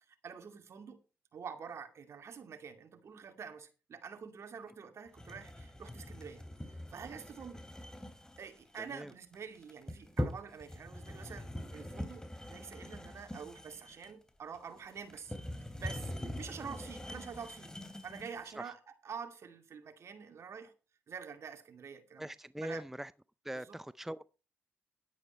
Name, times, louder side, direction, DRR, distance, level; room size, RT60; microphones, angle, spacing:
voice 1, 0.2-1.0 1.3-6.4 6.7-7.6 8.4-15.4 15.7-17.7 18.0-20.7 21.1-22.3 22.6-22.8 23.6-23.8, right 6 dB, 60° right, 2.3 m, -47 dB
sound 1, 5.1-18.5, left 1 dB, 10° left, 3.1 m, -43 dB
voice 2, 22.2-23.1 23.4-24.3, right 1 dB, 5° right, 0.5 m, -41 dB
11.0 x 9.6 x 4.5 m
supercardioid pair, 50°, 5 cm